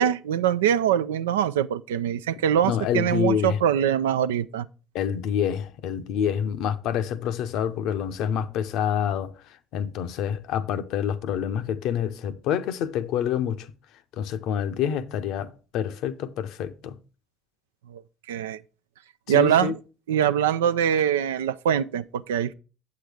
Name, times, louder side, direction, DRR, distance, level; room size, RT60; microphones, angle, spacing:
voice 1, 0.0-4.7 17.9-18.0 18.3-18.6 19.3-19.8 20.1-22.5, right 9 dB, 80° right, 0.3 m, -23 dB
voice 2, 2.6-3.6 4.9-9.3 9.7-13.7 14.2-17.0 19.3-19.7, left 8 dB, 65° left, 0.7 m, -27 dB
8.4 x 7.9 x 3.4 m
hypercardioid pair, 55°, 0 cm